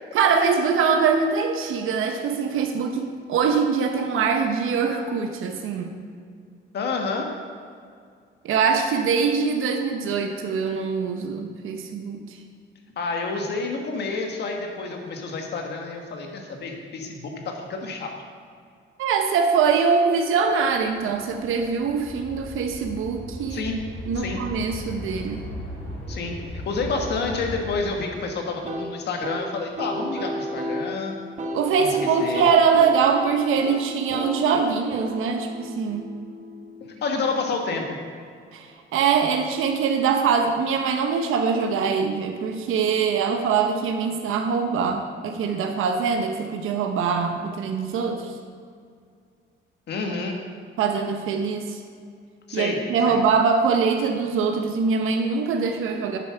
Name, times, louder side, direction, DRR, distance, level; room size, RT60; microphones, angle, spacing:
voice 1, 0.1-6.0 8.4-12.4 19.0-23.7 24.1-25.4 31.5-36.1 38.5-38.7 38.9-48.3 50.8-51.8 52.5-56.2, right 5 dB, 75° right, 4 dB, 1.0 m, -23 dB
voice 2, 6.7-7.3 13.0-18.1 23.5-23.8 24.1-24.4 26.1-31.2 31.8-32.5 37.0-38.0 49.9-50.3 52.5-52.8 53.0-53.2, left 4 dB, 55° left, 2 dB, 1.6 m, -29 dB
sound 1, 20.5-27.8, equal, 10° left, 2.6 m, -37 dB
sound 2, 28.6-37.2, right 1 dB, 35° right, 1.1 m, -33 dB
9.4 x 7.8 x 5.8 m, 2.2 s
cardioid pair, 180°, 21 cm